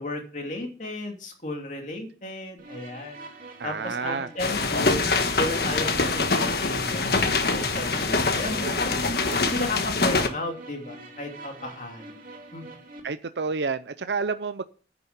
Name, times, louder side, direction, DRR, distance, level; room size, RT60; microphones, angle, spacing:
voice 1, 0.0-3.2 3.6-5.1 5.4-9.0 9.5-12.0 12.5-12.8, left 2 dB, 45° left, 2 dB, 2.8 m, -34 dB
sound 1, 2.6-13.0, right 2 dB, 50° right, 3.0 m, -44 dB
voice 2, 3.6-4.3 8.4-8.7 9.3-9.4 13.0-14.6, right 4 dB, 75° right, 12 dB, 0.6 m, -30 dB
sound 2, 4.4-10.3, left 3 dB, 60° left, 1.4 m, -24 dB
10.5 x 6.9 x 8.1 m, 0.40 s
head